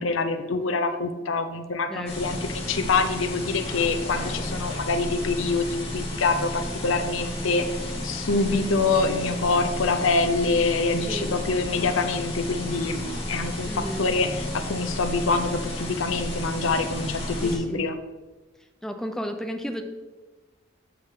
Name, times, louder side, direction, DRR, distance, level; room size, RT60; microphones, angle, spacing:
voice 1, 0.0-7.7 8.0-13.0 13.3-17.9, left 3 dB, 90° left, 8 dB, 0.7 m, -25 dB
voice 2, 1.9-2.5 8.3-8.7 11.1-11.3 13.7-14.1 17.4-17.9 18.8-19.8, equal, 5° left, 5 dB, 0.6 m, -33 dB
sound 1, 2.1-17.6, left 1 dB, 30° left, 2.2 m, -32 dB
9.4 x 6.4 x 3.7 m, 1.2 s
head